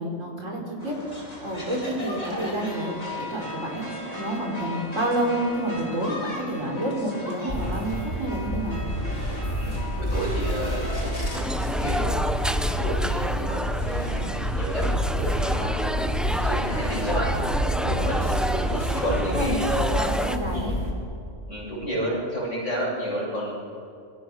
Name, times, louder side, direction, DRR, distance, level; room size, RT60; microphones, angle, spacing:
voice 1, 0.0-3.8 4.1-8.8 17.8-18.2 19.3-20.7, right 1 dB, 85° right, 0 dB, 5.3 m, -29 dB
sound 1, 0.8-11.4, left 1 dB, 30° left, 4.6 m, -37 dB
sound 2, 7.5-20.9, equal, 50° left, 4.0 m, -28 dB
voice 2, 9.6-12.1 12.8-13.7 13.9-17.4 17.6-18.2 19.0-19.9 20.5-20.7 21.5-23.5, equal, 80° left, -4 dB, 8.3 m, -31 dB
sound 3, 11.3-20.4, equal, ahead, 0.6 m, -30 dB
26.0 x 24.5 x 6.4 m, 2.6 s
omnidirectional pair, 1.3 m